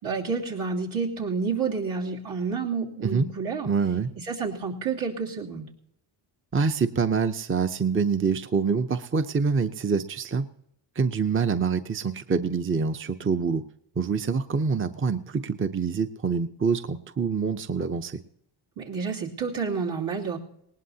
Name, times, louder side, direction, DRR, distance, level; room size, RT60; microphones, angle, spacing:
voice 1, 0.0-3.7 4.3-5.7 18.8-20.4, right 5 dB, 75° right, -5 dB, 3.0 m, -29 dB
voice 2, 3.6-4.1 6.5-10.5 11.0-13.6 14.0-18.2, right 5 dB, 25° right, 9 dB, 0.7 m, -26 dB
19.5 x 18.5 x 2.8 m, 0.75 s
cardioid pair, 65°, 49 cm